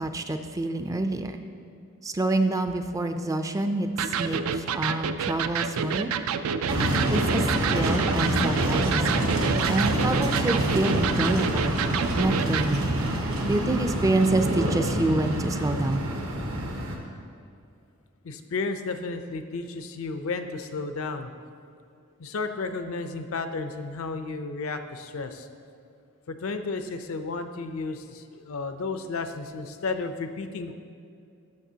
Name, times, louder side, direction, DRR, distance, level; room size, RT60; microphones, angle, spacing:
voice 1, 0.0-1.4 2.0-6.1 7.1-9.4 9.7-11.7 12.1-12.9 13.4-16.1, right 2 dB, 15° right, 7 dB, 0.3 m, -27 dB
Electric guitar, 4.0-12.7, right 7 dB, 90° right, 0.4 m, -29 dB
sound 1, 6.7-17.0, right 1 dB, 75° right, 1.0 m, -26 dB
voice 2, 18.2-21.3 22.2-25.5 26.3-30.7, left 3 dB, 75° left, 8 dB, 0.5 m, -33 dB
11.5 x 6.7 x 2.8 m, 2.5 s
head